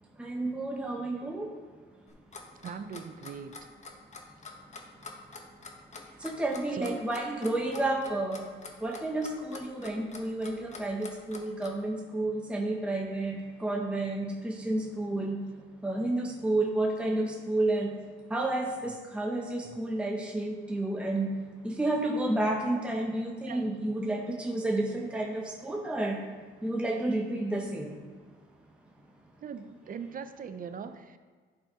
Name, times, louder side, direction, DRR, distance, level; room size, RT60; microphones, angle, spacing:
voice 1, 0.1-1.5 6.2-8.5 8.8-18.0 18.3-26.3 26.6-27.9, right 2 dB, 5° right, 0 dB, 0.9 m, -31 dB
Clock, 2.1-11.8, left 4 dB, 35° left, 1.0 m, -45 dB
voice 2, 2.6-3.5 6.1-6.2 6.7-7.0 23.5-23.6 29.4-31.2, right 6 dB, 45° right, 10 dB, 0.5 m, -40 dB
11.5 x 4.2 x 3.6 m, 1.5 s
cardioid pair, 90°, 20 cm